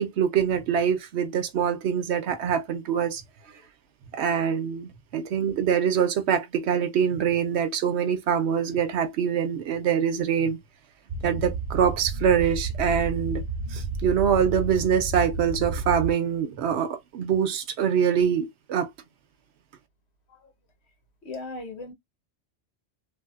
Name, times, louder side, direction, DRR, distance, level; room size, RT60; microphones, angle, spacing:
voice 1, 0.0-3.2 4.1-10.6 11.2-13.4 13.7-18.9, right 7 dB, 90° right, 0.9 m, -24 dB
sound 1, 11.1-16.1, right 3 dB, 40° right, 0.9 m, -31 dB
voice 2, 21.2-21.9, left 3 dB, 85° left, 1.4 m, -38 dB
3.4 x 2.6 x 2.3 m
omnidirectional pair, 1.1 m